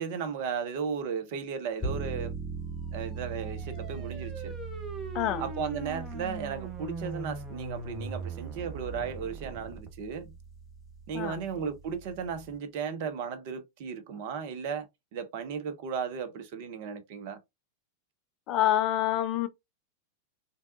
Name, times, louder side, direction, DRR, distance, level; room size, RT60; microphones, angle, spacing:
voice 1, 0.0-2.3 2.9-4.5 5.4-10.3 11.1-14.9 15.1-17.4, right 6 dB, 50° right, 0.7 m, -35 dB
sound 1, 1.8-12.6, right 4 dB, ahead, 2.1 m, -40 dB
sound 2, 3.0-9.9, right 3 dB, 15° right, 0.9 m, -41 dB
voice 2, 18.5-19.5, left 12 dB, 40° left, 0.4 m, -27 dB
3.3 x 2.7 x 2.5 m
figure-of-eight pair, 90°, 0 cm